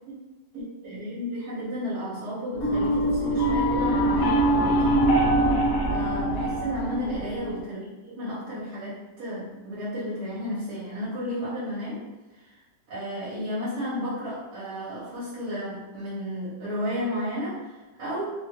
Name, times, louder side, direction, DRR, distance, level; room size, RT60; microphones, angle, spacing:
voice 1, 0.5-5.1 5.9-12.0 12.9-18.3, equal, 70° right, -8 dB, 1.4 m, -33 dB
sound 1, 2.5-7.6, right 1 dB, 65° left, 1.1 m, -23 dB
3.4 x 2.4 x 2.9 m, 1.2 s
omnidirectional pair, 1.7 m